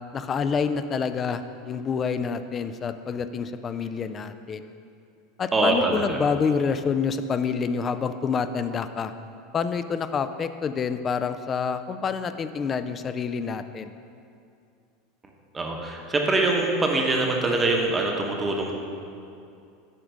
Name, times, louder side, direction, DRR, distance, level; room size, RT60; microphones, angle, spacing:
voice 1, 0.1-4.7 5.4-9.1 9.5-14.0, left 6 dB, 25° left, 11 dB, 0.3 m, -27 dB
voice 2, 5.5-6.2 15.5-18.7, right 2 dB, 15° right, 1 dB, 0.9 m, -24 dB
7.9 x 3.8 x 6.3 m, 2.5 s
supercardioid pair, 145°, 0 cm